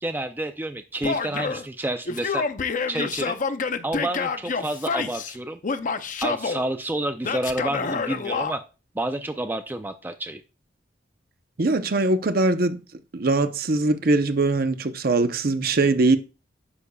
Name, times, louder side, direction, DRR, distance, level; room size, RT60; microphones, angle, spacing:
voice 1, 0.0-2.4 2.9-3.4 3.8-5.6 6.2-8.6 8.9-10.4, right 1 dB, 10° right, 0.4 m, -29 dB
Male speech man speaking / Yell, 1.0-1.6 2.1-5.3 5.6-6.6 7.2-8.5, left 5 dB, 45° left, 0.6 m, -28 dB
voice 2, 11.6-12.8 13.1-16.2, right 2 dB, 55° right, 0.7 m, -21 dB
9.7 x 6.8 x 2.3 m
head